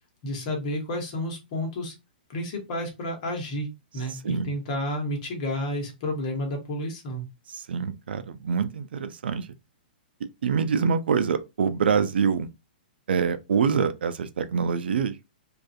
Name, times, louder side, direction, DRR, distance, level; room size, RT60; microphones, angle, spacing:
voice 1, 0.2-1.9 2.3-3.7 3.9-7.2, left 1 dB, 40° left, 0.9 m, -31 dB
voice 2, 7.5-9.5 10.4-12.5 13.1-15.3, right 6 dB, 80° right, 0.4 m, -25 dB
2.4 x 2.3 x 2.5 m
hypercardioid pair, 160°, 5 cm